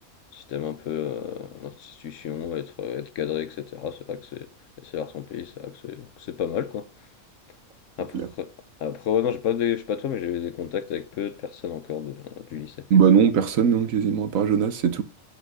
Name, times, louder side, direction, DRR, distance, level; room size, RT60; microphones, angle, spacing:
voice 1, 0.3-4.5 4.8-6.9 8.0-8.5 8.8-12.9, left 9 dB, 65° left, 1.0 m, -31 dB
voice 2, 12.9-15.0, right 7 dB, 70° right, 1.3 m, -20 dB
8.2 x 5.3 x 6.2 m
omnidirectional pair, 1.5 m